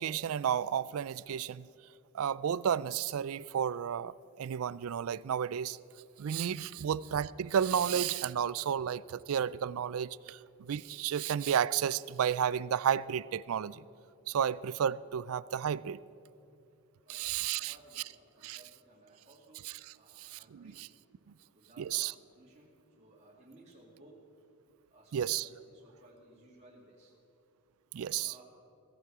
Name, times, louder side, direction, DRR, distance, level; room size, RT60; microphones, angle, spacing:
voice 1, 0.0-1.7 2.1-5.8 6.2-13.8 14.3-16.0 17.1-17.7 18.4-18.6 19.6-19.7 20.2-20.9 21.8-22.1 25.1-25.4 27.9-28.3, right 8 dB, 75° right, 20 dB, 0.4 m, -32 dB
voice 2, 17.0-19.7 19.9-20.9 21.3-24.2 24.9-27.1 28.1-28.4, right 1 dB, 30° right, -5 dB, 2.5 m, -59 dB
17.0 x 15.5 x 4.9 m, 2.7 s
head